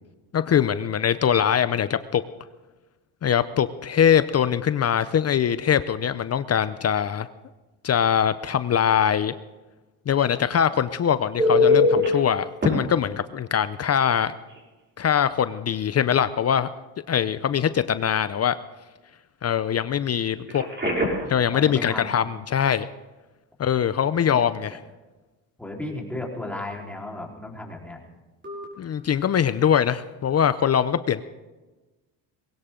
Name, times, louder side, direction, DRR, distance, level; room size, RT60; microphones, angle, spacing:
voice 1, 0.3-2.2 3.2-7.3 7.8-9.3 10.1-14.3 15.0-16.7 17.1-18.6 19.4-20.7 21.3-22.9 23.6-24.8 28.8-31.2, left 8 dB, 35° left, 14 dB, 0.6 m, -22 dB
Telephone, 11.4-12.1 12.6-12.7 14.5-14.6 15.0-15.2 20.5-21.3 28.4-28.6, left 3 dB, 25° right, 6.1 m, -21 dB
voice 2, 21.5-22.1 25.6-28.0, left 2 dB, 5° left, -2 dB, 4.2 m, -34 dB
21.5 x 16.5 x 3.8 m, 1.2 s
cardioid pair, 100°, 42 cm